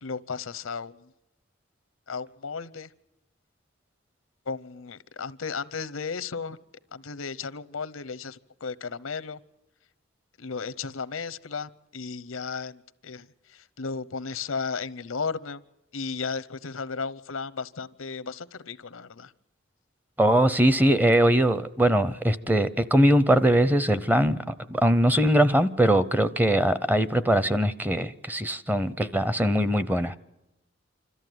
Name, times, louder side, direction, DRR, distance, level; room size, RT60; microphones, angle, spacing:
voice 1, 0.0-1.0 2.1-2.9 4.5-6.6 6.9-9.4 10.4-13.3 13.5-15.6 15.9-19.3, left 5 dB, 85° left, 0.8 m, -34 dB
voice 2, 20.2-24.4 24.7-30.2, right 1 dB, 10° right, 0.7 m, -21 dB
26.0 x 14.0 x 9.3 m
head